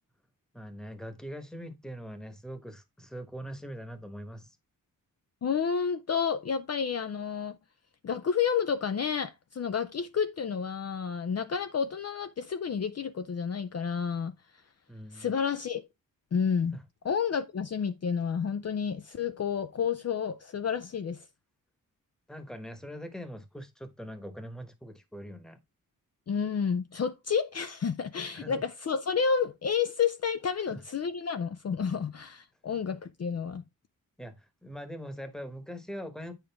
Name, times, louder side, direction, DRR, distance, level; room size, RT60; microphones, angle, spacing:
voice 1, 0.5-4.5 14.9-15.3 22.3-25.6 28.3-28.6 30.7-30.8 34.2-34.3 34.6-36.3, equal, ahead, 1.1 m, -42 dB
voice 2, 5.4-7.6 8.0-14.3 15.1-15.8 16.3-16.8 17.0-21.2 26.3-33.6, left 6 dB, 50° left, 0.5 m, -30 dB
9.0 x 5.1 x 3.5 m
wide cardioid pair, 125°, 34 cm